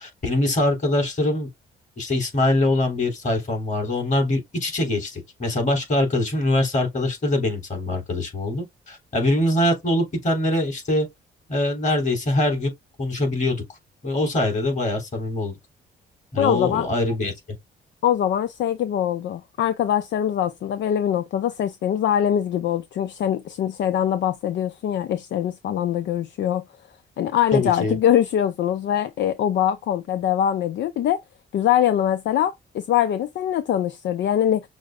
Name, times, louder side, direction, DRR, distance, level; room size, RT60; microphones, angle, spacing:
voice 1, 0.0-1.5 2.0-11.1 11.5-12.7 13.0-13.6 14.0-15.5 16.3-17.3 27.5-28.0, left 1 dB, 40° left, 3.1 m, -23 dB
voice 2, 16.4-16.9 18.0-26.6 27.2-31.2 31.5-34.6, left 10 dB, 65° left, 0.5 m, -23 dB
6.3 x 2.1 x 3.6 m
cardioid pair, 90°, 20 cm